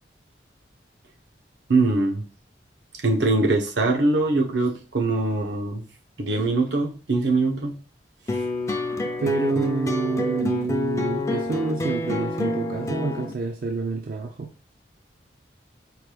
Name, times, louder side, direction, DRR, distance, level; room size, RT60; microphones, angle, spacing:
voice 1, 1.7-2.2 3.0-5.8 6.2-7.8, right 2 dB, 75° right, 2 dB, 0.8 m, -22 dB
sound 1, 8.3-13.3, left 2 dB, 15° left, 0.4 m, -27 dB
voice 2, 9.2-14.5, right 4 dB, 50° right, 3 dB, 0.4 m, -27 dB
4.5 x 2.2 x 3.2 m, 0.37 s
head